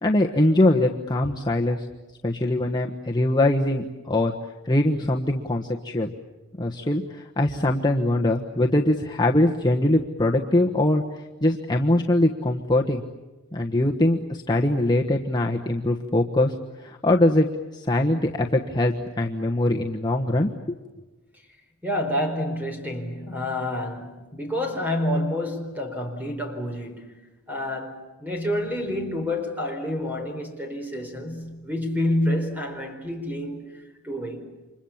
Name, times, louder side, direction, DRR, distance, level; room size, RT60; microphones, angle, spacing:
voice 1, 0.0-1.9 2.2-4.3 4.6-6.1 6.6-11.0 11.4-13.0 13.5-17.5 17.7-20.8, left 1 dB, 20° left, 1.3 m, -22 dB
voice 2, 21.8-27.2 27.5-33.7 34.0-34.5, left 1 dB, 10° right, 4.3 m, -28 dB
29.5 x 26.0 x 7.3 m
head